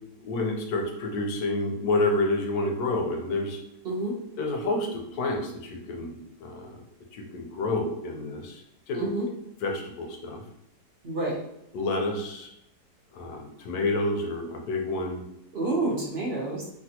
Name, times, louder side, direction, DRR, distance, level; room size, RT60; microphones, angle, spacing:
voice 1, 0.2-3.6 4.4-6.7 7.1-9.0 9.6-10.4 11.7-12.5 13.1-15.2, left 2 dB, 70° left, 2 dB, 1.0 m, -29 dB
voice 2, 8.9-9.3 11.0-11.4 15.5-16.6, right 2 dB, 50° right, -3 dB, 0.8 m, -28 dB
3.3 x 2.3 x 2.8 m, 0.80 s
omnidirectional pair, 1.9 m